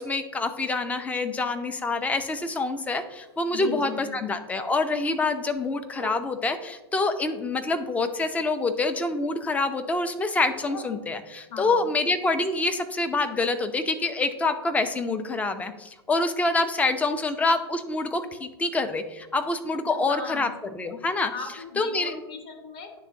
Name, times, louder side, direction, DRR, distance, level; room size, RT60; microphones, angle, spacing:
voice 1, 0.0-21.3 21.8-22.2, left 3 dB, 10° left, 8 dB, 0.5 m, -26 dB
Bark, 1.2-4.4 4.8-6.7 7.2-9.0 9.3-11.6 12.0-16.0 16.3-16.4 16.7-17.1 17.5-17.6 18.0-18.1 18.6-18.7, left 1 dB, 80° left, 1.1 m, -48 dB
voice 2, 3.5-4.2 11.5-11.9 19.7-20.5 21.3-23.0, left 4 dB, 35° left, 0 dB, 1.7 m, -38 dB
9.8 x 3.6 x 2.7 m, 1.1 s
figure-of-eight pair, 95°, 14 cm